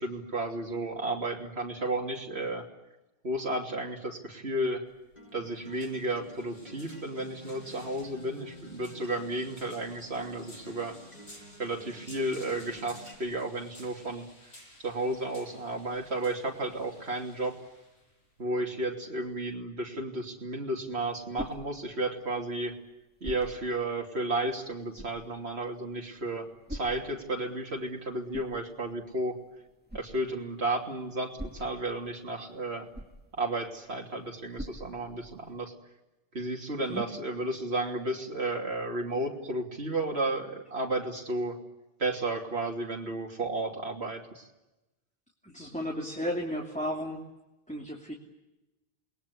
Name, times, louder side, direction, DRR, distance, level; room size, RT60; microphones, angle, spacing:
voice 1, 0.0-2.6 3.2-4.8 5.3-11.0 11.6-14.3 14.8-17.6 18.4-22.7 23.2-29.4 29.9-32.9 33.3-35.7 36.3-41.6 42.0-44.5, right 2 dB, 85° right, 0 dB, 3.2 m, -33 dB
sound 1, 4.9-19.5, left 1 dB, 90° left, 8.3 m, -55 dB
Acoustic guitar, 5.2-13.1, left 1 dB, 40° left, 6.4 m, -50 dB
sound 2, 20.7-35.6, equal, 10° right, 2.6 m, -47 dB
voice 2, 45.4-47.2 47.7-48.1, equal, 5° left, 0 dB, 2.9 m, -34 dB
29.0 x 20.5 x 9.9 m, 1.0 s
omnidirectional pair, 1.1 m